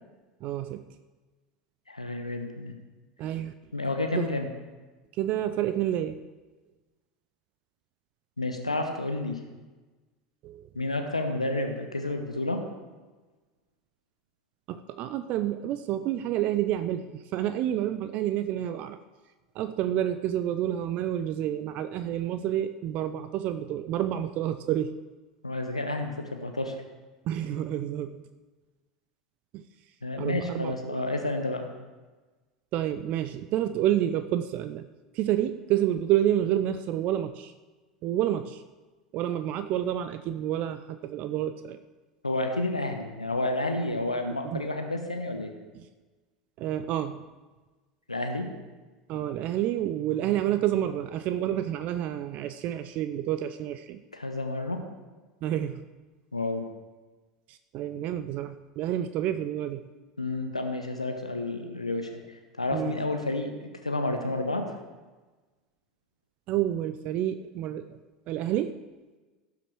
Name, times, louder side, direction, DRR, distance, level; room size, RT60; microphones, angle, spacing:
voice 1, 0.4-0.8 3.2-3.5 4.2-4.4 5.2-6.2 10.4-10.6 14.7-19.0 19.6-24.9 27.3-28.2 29.5-29.6 30.2-31.0 32.7-34.9 35.1-37.5 38.0-38.6 39.1-41.8 44.4-44.6 46.6-47.2 49.1-54.0 55.4-55.8 57.5-59.8 62.7-62.9 66.5-67.9 68.3-68.8, right 11 dB, 45° right, 11 dB, 0.5 m, -29 dB
voice 2, 1.9-2.8 3.7-4.5 8.4-9.4 10.7-12.6 25.4-26.8 30.0-31.7 42.2-45.5 48.1-48.5 54.1-54.8 56.3-56.7 60.2-63.5 63.8-64.7, left 2 dB, 90° left, 5 dB, 0.9 m, -30 dB
17.0 x 6.0 x 4.6 m, 1.2 s
figure-of-eight pair, 75°, 3 cm